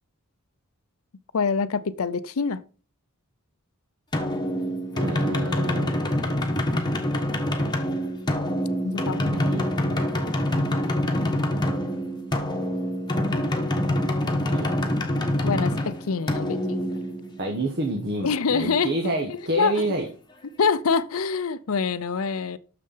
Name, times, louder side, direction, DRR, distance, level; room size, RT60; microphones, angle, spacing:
voice 1, 1.3-2.6 8.8-9.3 15.4-16.9 18.2-18.9 19.3-19.7 20.6-22.6, left 5 dB, 65° left, 0.6 m, -25 dB
sound 1, 4.1-17.7, left 1 dB, 20° left, 1.3 m, -26 dB
voice 2, 4.9-6.0 9.2-9.7 14.4-14.7 17.4-20.1, right 1 dB, 50° right, 1.2 m, -28 dB
6.8 x 6.4 x 5.6 m
head